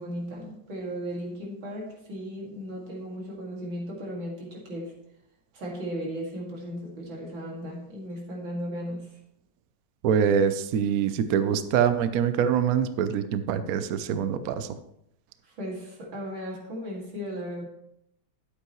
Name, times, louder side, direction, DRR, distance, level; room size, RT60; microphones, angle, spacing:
voice 1, 0.0-5.0 5.5-9.2 15.4-17.7, equal, 90° right, -3 dB, 3.1 m, -36 dB
voice 2, 10.0-14.8, right 8 dB, 65° right, 11 dB, 0.9 m, -24 dB
12.0 x 8.3 x 3.1 m, 0.77 s
omnidirectional pair, 2.0 m